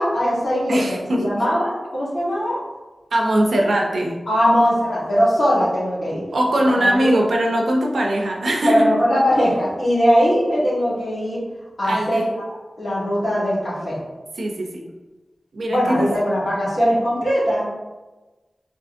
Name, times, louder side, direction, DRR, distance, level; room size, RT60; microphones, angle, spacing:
voice 1, 0.0-2.6 4.3-6.2 6.7-7.2 8.6-11.4 11.8-12.3 12.8-14.0 15.7-17.6, equal, 55° left, -8 dB, 1.4 m, -20 dB
voice 2, 0.7-1.4 3.1-4.2 6.3-8.9 11.8-12.3 14.4-14.9 15.5-16.1, right 1 dB, 75° right, 0 dB, 0.5 m, -21 dB
3.4 x 2.8 x 2.6 m, 1.2 s
wide cardioid pair, 105°, 0 cm